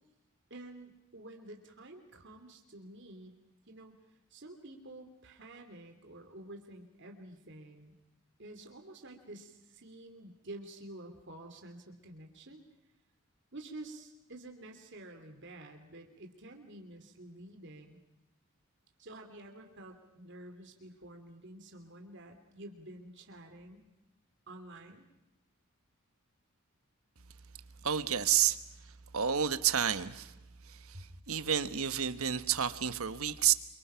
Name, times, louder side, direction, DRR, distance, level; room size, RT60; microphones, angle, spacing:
voice 1, 0.5-3.3 3.7-4.0 4.3-7.9 8.4-12.6 13.5-18.0 19.0-23.9 24.5-25.1 30.9-31.0, right 1 dB, 55° right, 4 dB, 3.1 m, -49 dB
voice 2, 27.8-28.6 29.1-30.3 30.7-33.5, right 9 dB, 75° right, 12 dB, 1.3 m, -30 dB
28.0 x 24.5 x 5.8 m, 0.92 s
head